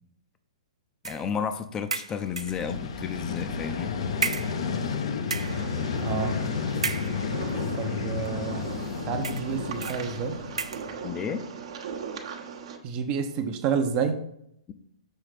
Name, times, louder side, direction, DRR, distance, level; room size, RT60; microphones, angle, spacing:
voice 1, 1.0-3.9 11.0-11.5, left 7 dB, 20° left, 9 dB, 0.5 m, -32 dB
sound 1, 1.0-1.3 1.9-2.7 3.5-3.6 4.2-5.0 5.2-5.7 6.8-7.5 8.3-8.4 9.2-9.5 9.8-10.1 10.6-10.9, right 5 dB, 80° right, 0.4 m, -33 dB
Vehicle, 2.3-11.2, left 5 dB, 60° left, 0.7 m, -31 dB
sound 2, 5.4-12.8, right 6 dB, 60° right, 0.9 m, -39 dB
voice 2, 6.0-6.4 7.7-8.7 9.1-10.4 12.8-14.2, right 6 dB, 35° right, 6 dB, 0.7 m, -29 dB
6.4 x 3.2 x 5.0 m, 0.74 s
figure-of-eight pair, 120°, 3 cm